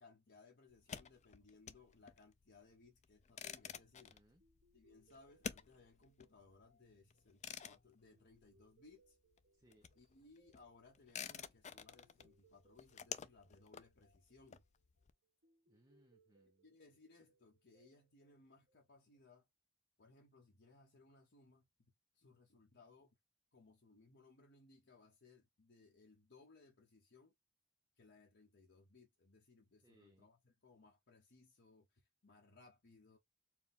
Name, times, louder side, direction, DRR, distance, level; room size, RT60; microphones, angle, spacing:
voice 1, 0.0-4.1 4.7-9.2 10.0-14.6 16.6-19.5 20.0-23.1 23.5-27.3 28.0-33.2, left 3 dB, 60° left, 1.1 m, -65 dB
sound 1, 0.7-9.1 9.3-15.1, left 7 dB, 35° left, 0.4 m, -51 dB
voice 2, 3.8-4.4 9.5-10.0 15.7-16.7 29.8-30.3, right 1 dB, 20° right, 0.7 m, -71 dB
sound 2, 4.4-19.2, right 2 dB, 60° right, 1.1 m, -76 dB
4.5 x 2.3 x 3.5 m
head